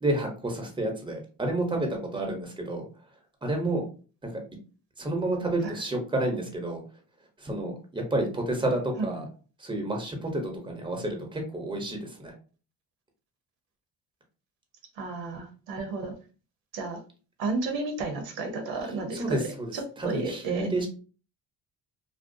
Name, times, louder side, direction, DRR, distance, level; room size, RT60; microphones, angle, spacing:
voice 1, 0.0-2.9 3.4-3.9 4.2-4.4 5.0-6.8 7.4-9.2 9.6-12.3 19.1-20.9, right 1 dB, 10° right, 2 dB, 0.9 m, -30 dB
voice 2, 15.0-16.1 16.7-17.0 17.4-19.4 19.7-20.7, right 3 dB, 85° right, 4 dB, 0.8 m, -32 dB
2.5 x 2.0 x 2.6 m, 0.37 s
cardioid pair, 70°, 44 cm